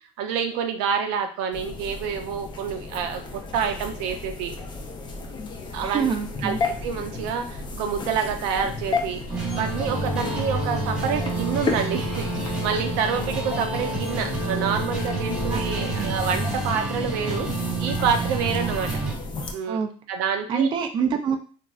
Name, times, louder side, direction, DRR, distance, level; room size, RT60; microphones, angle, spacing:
voice 1, 0.2-4.5 5.7-6.1 6.4-6.6 6.8-9.2 9.6-17.5 17.8-18.9 19.5-19.8 20.1-20.7, right 7 dB, 80° right, 5 dB, 0.5 m, -27 dB
sound 1, 1.5-19.5, left 3 dB, 30° left, 0.5 m, -34 dB
voice 2, 5.8-6.6 15.5-15.6 15.9-16.1 19.7-19.9 20.5-21.4, right 6 dB, 30° right, 4 dB, 0.4 m, -25 dB
sound 2, 9.3-19.1, right 3 dB, 10° right, 0.9 m, -29 dB
Brass instrument, 9.6-16.0, left 8 dB, 75° left, 0.7 m, -36 dB
3.0 x 2.5 x 2.3 m, 0.40 s
supercardioid pair, 115°, 15 cm